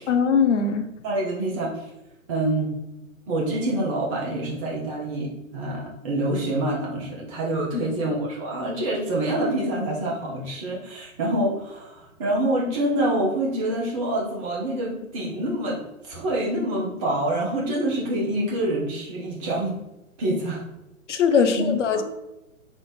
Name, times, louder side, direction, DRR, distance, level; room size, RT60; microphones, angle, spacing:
voice 1, 0.1-0.9 7.7-8.0 21.1-22.0, left 6 dB, 60° left, 8 dB, 0.6 m, -21 dB
voice 2, 1.0-1.8 2.3-2.7 3.3-19.8 20.2-20.6 21.3-22.0, right 1 dB, 25° right, -4 dB, 0.6 m, -26 dB
4.0 x 2.5 x 3.3 m, 0.95 s
figure-of-eight pair, 120°, 41 cm